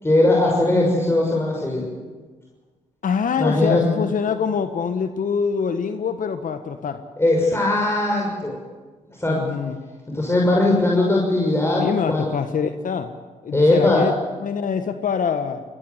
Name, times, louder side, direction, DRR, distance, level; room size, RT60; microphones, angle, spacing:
voice 1, 0.0-1.9 3.4-3.9 7.2-8.6 9.2-9.4 10.1-12.3 13.5-14.1, left 2 dB, 15° left, -2 dB, 6.2 m, -19 dB
voice 2, 3.0-7.0 9.3-9.8 11.7-13.1 13.4-14.1 14.4-15.6, left 6 dB, 55° left, 9 dB, 1.5 m, -24 dB
21.5 x 20.5 x 8.2 m, 1.4 s
hypercardioid pair, 50°, 16 cm